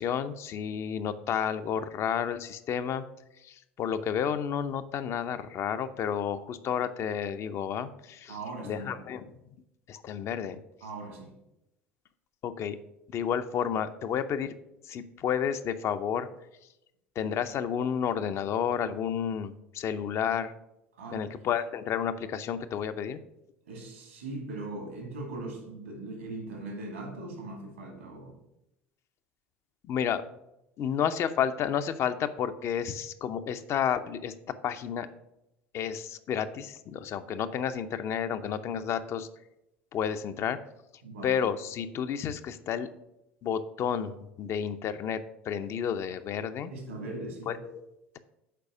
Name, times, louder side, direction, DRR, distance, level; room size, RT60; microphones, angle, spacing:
voice 1, 0.0-3.0 3.4-8.4 8.6-9.2 9.9-10.6 12.4-12.8 13.1-14.5 14.8-16.3 17.2-20.5 21.1-23.2 29.9-30.2 30.8-34.3 34.6-35.1 35.7-39.3 39.9-40.6 41.2-42.9 43.4-45.2 45.5-46.7 47.5-47.8, left 8 dB, 45° left, 10 dB, 0.6 m, -31 dB
voice 2, 8.3-9.0 10.8-11.4 20.9-21.3 23.6-28.3 41.0-41.4 46.7-47.6, right 2 dB, 80° right, 2 dB, 2.3 m, -40 dB
6.8 x 4.7 x 6.0 m, 0.88 s
figure-of-eight pair, 70°, 7 cm